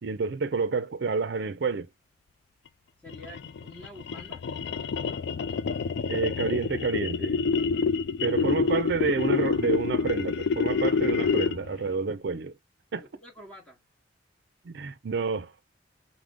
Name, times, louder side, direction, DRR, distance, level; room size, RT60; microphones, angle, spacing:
voice 1, 0.0-1.9 6.1-7.4 8.2-12.6 12.9-13.0 14.6-15.5, right 4 dB, 60° right, 0.5 m, -29 dB
voice 2, 3.0-4.4 12.9-13.8, equal, 10° left, 1.0 m, -47 dB
sound 1, 3.1-11.8, left 5 dB, 65° left, 0.3 m, -27 dB
4.8 x 2.1 x 3.6 m
head